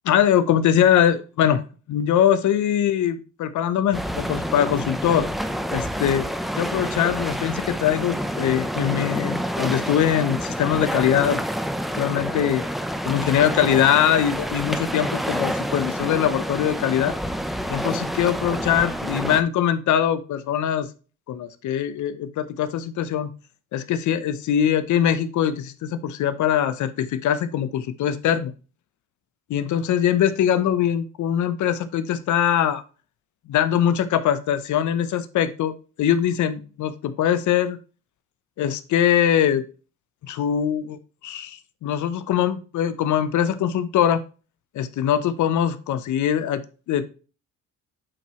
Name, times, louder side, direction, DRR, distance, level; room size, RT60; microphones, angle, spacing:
voice 1, 0.0-1.6 1.9-5.3 5.7-11.4 12.0-12.6 13.0-17.1 17.7-20.9 21.3-23.3 23.7-28.5 29.5-32.8 33.5-35.7 36.0-37.8 38.6-39.7 40.2-44.2 44.7-47.0, left 10 dB, 75° left, 13 dB, 0.8 m, -22 dB
sound 1, 3.9-19.4, equal, ahead, 0.7 m, -28 dB
8.7 x 4.7 x 3.1 m, 0.35 s
cardioid pair, 90°, 30 cm